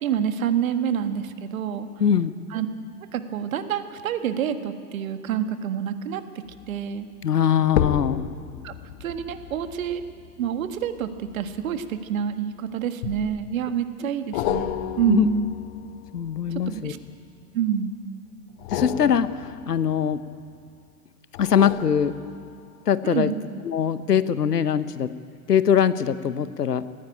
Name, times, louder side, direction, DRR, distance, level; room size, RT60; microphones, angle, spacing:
voice 1, 0.0-1.9 2.5-2.7 3.1-7.1 8.6-8.7 9.0-10.0 10.4-14.7 15.0-15.5 16.7-17.0 17.5-17.9 23.0-23.4, right 8 dB, 60° right, 9 dB, 1.7 m, -27 dB
voice 2, 2.0-2.3 7.2-8.3 15.1-15.3 16.1-16.9 18.7-20.2 21.4-22.1 22.9-23.3 23.6-25.1 25.5-26.9, left 8 dB, 85° left, 15 dB, 1.0 m, -22 dB
sound 1, 6.5-6.8 7.7-12.3 13.0-13.6 14.3-17.3 18.5-20.6 21.3-22.8 23.2-23.3, left 11 dB, 45° left, 1.2 m, -33 dB
18.5 x 15.5 x 9.1 m, 2.3 s
figure-of-eight pair, 105°, 46 cm